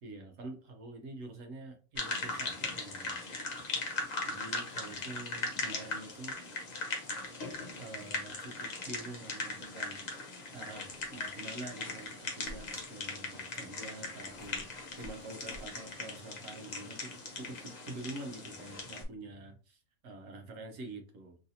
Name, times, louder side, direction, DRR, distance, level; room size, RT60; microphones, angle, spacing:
voice 1, 0.0-3.2 4.2-6.4 7.8-21.4, right 2 dB, 65° right, 5 dB, 1.0 m, -46 dB
sound 1, 2.0-19.0, left 3 dB, 45° left, 0.6 m, -39 dB
sound 2, 10.9-11.1 11.3-11.4 12.4-12.7 13.5-13.6 14.2-15.7, left 1 dB, 70° left, 1.0 m, -50 dB
3.1 x 2.7 x 2.7 m, 0.37 s
omnidirectional pair, 1.5 m